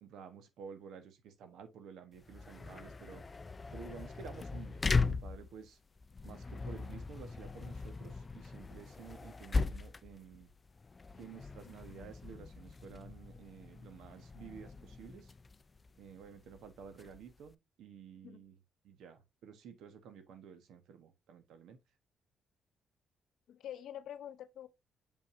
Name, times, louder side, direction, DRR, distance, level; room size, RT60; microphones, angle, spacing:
voice 1, 0.0-3.2 3.7-5.8 6.2-10.5 11.2-15.3 16.0-18.5 18.8-21.8, right 7 dB, 80° right, 1.2 m, -52 dB
sound 1, 2.1-17.5, left 4 dB, 30° left, 0.4 m, -39 dB
voice 2, 23.5-24.7, left 10 dB, 75° left, 0.9 m, -46 dB
6.9 x 5.6 x 2.7 m
cardioid pair, 90°, 0 cm